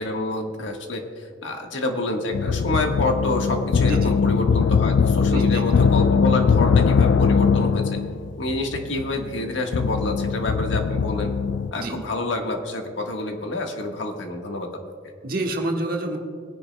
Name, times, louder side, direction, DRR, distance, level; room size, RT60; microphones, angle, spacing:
voice 1, 0.0-8.0 8.4-11.3 11.7-14.7 15.0-15.1, left 2 dB, 85° left, 3 dB, 1.4 m, -28 dB
sound 1, 2.3-11.7, left 5 dB, 70° left, 0.3 m, -21 dB
voice 2, 3.8-4.1 5.3-5.8 11.7-12.0 15.2-16.2, right 1 dB, 50° right, 1 dB, 1.4 m, -28 dB
21.5 x 10.5 x 2.2 m, 2.1 s
head